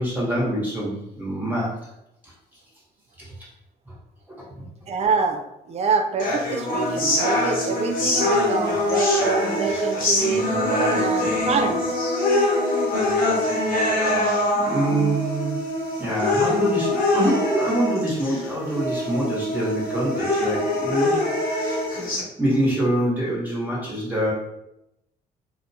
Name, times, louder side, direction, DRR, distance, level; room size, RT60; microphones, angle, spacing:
voice 1, 0.0-1.9 3.2-3.3 3.8-3.9 4.5-4.7 14.5-15.6 16.0-21.8 22.4-24.3, right 1 dB, 10° right, -7 dB, 1.1 m, -25 dB
voice 2, 4.9-5.4 5.7-10.5 10.9-11.8, right 4 dB, 40° right, 7 dB, 0.4 m, -26 dB
sound 1, 6.2-22.2, left 1 dB, 60° left, 1.0 m, -23 dB
2.5 x 2.1 x 2.7 m, 0.85 s
cardioid pair, 80°, 17 cm